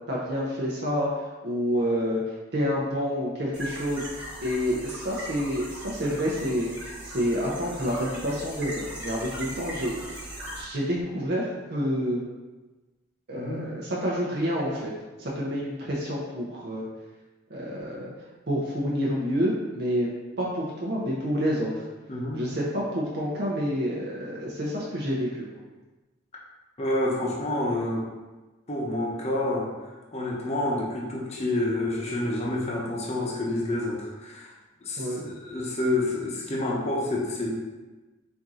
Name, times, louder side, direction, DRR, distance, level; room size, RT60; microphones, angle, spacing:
voice 1, 0.1-1.1 1.4-2.2 2.5-4.1 4.4-6.7 7.0-10.3 10.5-12.2 13.3-14.9 15.2-16.9 17.5-18.1 18.5-21.8 22.4-25.5 35.0-35.2, equal, 60° right, -5 dB, 0.7 m, -28 dB
sound 1, 3.5-10.6, right 1 dB, 10° right, 1.3 m, -39 dB
voice 2, 13.3-13.7 22.1-22.4 26.8-28.1 28.7-29.7 30.1-34.5 34.8-37.5, left 1 dB, 35° left, -3 dB, 0.7 m, -28 dB
4.5 x 2.7 x 3.7 m, 1.2 s
head